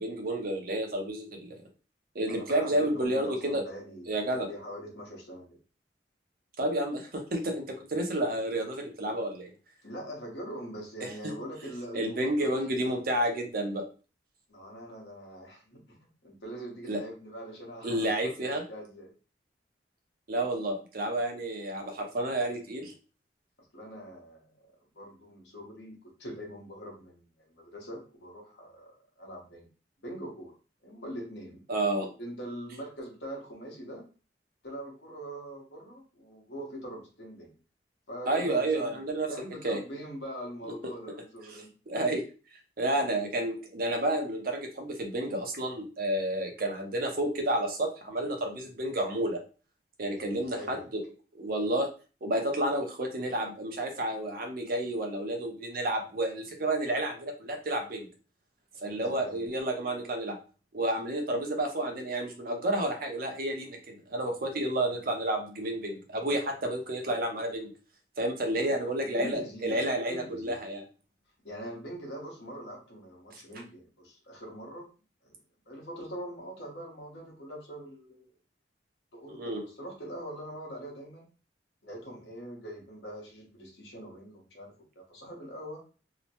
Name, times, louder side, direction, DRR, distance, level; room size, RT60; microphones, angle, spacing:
voice 1, 0.0-1.6 2.1-3.6 4.1-4.5 6.6-9.5 11.9-13.8 16.9-17.0 17.8-18.6 20.3-22.9 31.7-32.1 38.3-39.3 39.6-39.8 41.9-42.2 42.8-49.4 50.0-51.0 51.3-51.9 52.2-58.1 58.8-60.4 60.7-67.7 68.2-70.8 73.3-73.4 79.3-79.6, right 1 dB, 55° right, 3 dB, 0.6 m, -30 dB
voice 2, 2.3-5.6 9.8-13.0 14.5-16.0 16.2-19.1 23.7-24.5 24.9-29.7 30.0-31.6 32.2-34.1 34.6-37.5 38.1-39.0 39.3-41.7 50.1-50.8 59.0-59.4 68.4-70.6 71.4-74.9 75.2-75.4 75.7-78.3 79.1-81.3 81.8-85.8, right 1 dB, 70° left, 0 dB, 1.0 m, -43 dB
2.8 x 2.1 x 2.8 m, 0.35 s
head